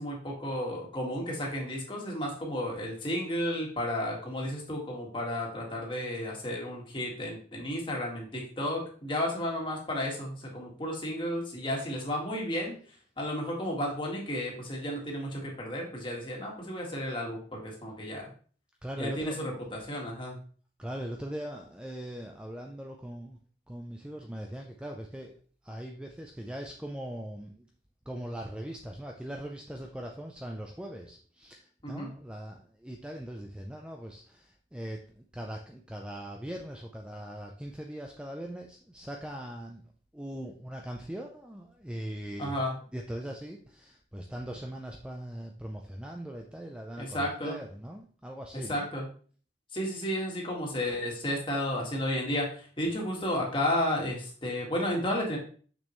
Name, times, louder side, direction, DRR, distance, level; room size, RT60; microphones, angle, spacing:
voice 1, 0.0-12.8 13.2-18.3 19.0-20.4 31.8-32.1 42.4-42.7 47.0-47.6 48.5-49.1 49.7-55.4, left 1 dB, 25° left, -1 dB, 1.9 m, -32 dB
voice 2, 18.8-19.4 20.8-23.4 23.7-25.4 25.6-27.7 28.1-39.8 40.1-42.6 42.9-48.9, equal, 5° right, 1 dB, 0.5 m, -40 dB
6.5 x 6.2 x 3.1 m, 0.43 s
head